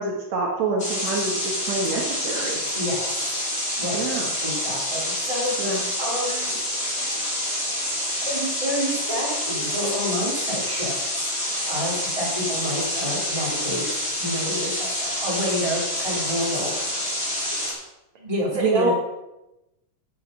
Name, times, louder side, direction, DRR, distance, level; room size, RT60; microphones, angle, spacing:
voice 1, 0.0-2.6 3.9-4.3 5.6-5.8 10.7-10.8 18.5-18.9, right 3 dB, 65° right, -1 dB, 2.5 m, -26 dB
sound 1, 0.8-17.7, left 1 dB, 15° left, 4.6 m, -27 dB
voice 2, 2.7-3.1 3.7-4.0 4.4-6.6 8.2-10.9 11.4-13.8 14.2-17.0 18.2-18.9, equal, 10° right, -5 dB, 3.2 m, -29 dB
12.5 x 7.8 x 5.3 m, 0.95 s
omnidirectional pair, 3.6 m